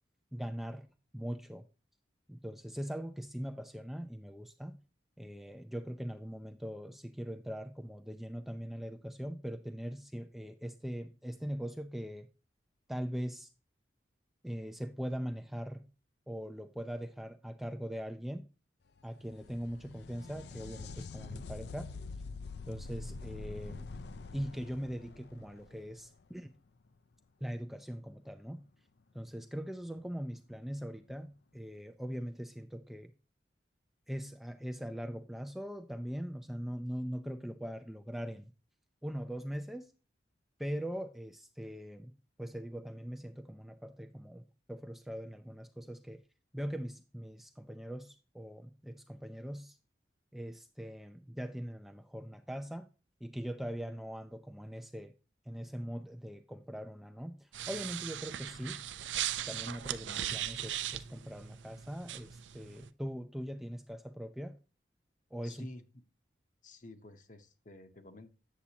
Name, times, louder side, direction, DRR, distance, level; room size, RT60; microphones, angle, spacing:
voice 1, 0.3-0.9 1.1-1.6 2.3-4.8 5.2-12.3 12.9-13.5 14.4-15.9 16.3-18.4 19.0-21.9 22.7-23.9 24.3-26.5 27.4-28.6 29.1-33.1 34.1-38.5 39.0-39.9 40.6-42.1 42.4-46.2 46.5-49.8 50.3-52.9 53.2-55.1 55.5-58.8 59.5-64.6 65.3-65.7, equal, ahead, 0.3 m, -41 dB
sound 1, 19.0-26.6 30.0-30.1 31.1-31.2, left 3 dB, 65° left, 0.5 m, -46 dB
sound 2, 57.5-62.9, right 11 dB, 90° right, 0.5 m, -39 dB
voice 2, 65.4-65.8 66.6-68.3, left 2 dB, 45° left, 0.8 m, -50 dB
8.3 x 7.1 x 2.8 m
head